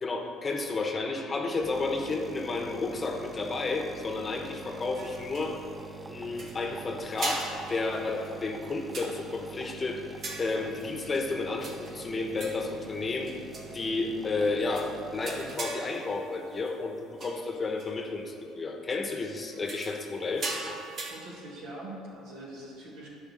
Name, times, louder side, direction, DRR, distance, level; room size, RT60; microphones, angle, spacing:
voice 1, 0.0-5.6 6.1-10.0 10.4-13.4 13.7-20.8, left 3 dB, 30° left, 3 dB, 1.0 m, -32 dB
sound 1, 1.6-15.5, right 3 dB, 15° right, 0.6 m, -45 dB
sound 2, 4.9-5.8 6.3-6.7 7.1-9.5 10.2-11.3 11.6-12.7 13.2-13.8 14.4-14.5 14.7-14.9 15.2-16.7 17.2-17.5 17.8-17.9 19.5-21.1, right 3 dB, 45° right, 1.5 m, -40 dB
voice 2, 21.1-23.1, right 1 dB, 65° right, -3 dB, 2.0 m, -43 dB
11.0 x 5.0 x 6.4 m, 2.8 s
figure-of-eight pair, 55°, 0 cm